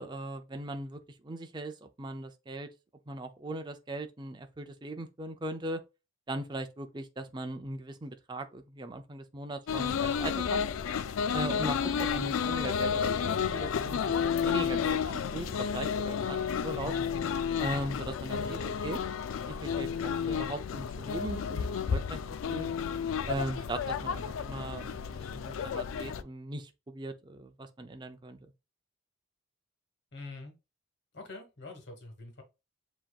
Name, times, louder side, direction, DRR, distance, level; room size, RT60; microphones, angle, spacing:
voice 1, 0.0-2.7 3.1-5.8 6.3-10.6 11.3-16.9 17.6-19.0 19.5-22.2 22.5-22.7 23.3-28.4, right 2 dB, 20° right, 0.5 m, -39 dB
sound 1, 9.7-26.2, left 7 dB, 80° left, 0.4 m, -31 dB
voice 2, 16.7-17.1 18.4-18.7 30.1-30.5 31.1-32.4, left 3 dB, 55° left, 1.5 m, -44 dB
7.3 x 2.9 x 2.3 m
head